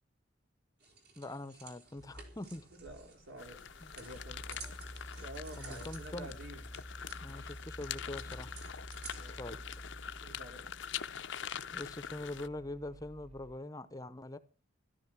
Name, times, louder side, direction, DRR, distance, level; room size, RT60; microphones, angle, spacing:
sound 1, 0.8-9.4, right 3 dB, 55° right, 3.8 m, -54 dB
voice 1, 1.2-2.7 4.6-4.7 5.6-6.3 7.2-8.5 9.4-9.6 11.7-14.4, left 1 dB, 20° left, 0.8 m, -43 dB
Mechanical fan, 2.3-13.6, equal, 30° right, 2.0 m, -50 dB
voice 2, 2.8-3.6 3.9-4.7 5.2-6.6 9.1-9.8 10.2-10.8, right 1 dB, 80° right, 4.9 m, -50 dB
sound 2, 3.4-12.5, left 9 dB, 65° left, 0.6 m, -44 dB
13.5 x 13.0 x 6.0 m
head